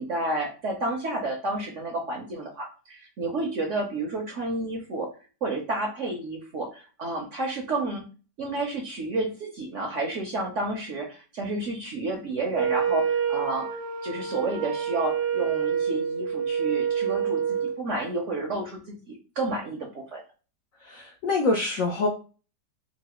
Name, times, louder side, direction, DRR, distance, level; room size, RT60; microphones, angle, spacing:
voice 1, 0.0-5.1 5.4-8.0 8.4-20.2, right 2 dB, 60° right, 1 dB, 0.8 m, -31 dB
Wind instrument woodwind instrument, 12.5-17.8, right 7 dB, 90° right, 1.3 m, -27 dB
voice 2, 20.8-22.1, left 3 dB, 65° left, 0 dB, 0.9 m, -25 dB
3.1 x 2.6 x 2.9 m, 0.34 s
omnidirectional pair, 1.9 m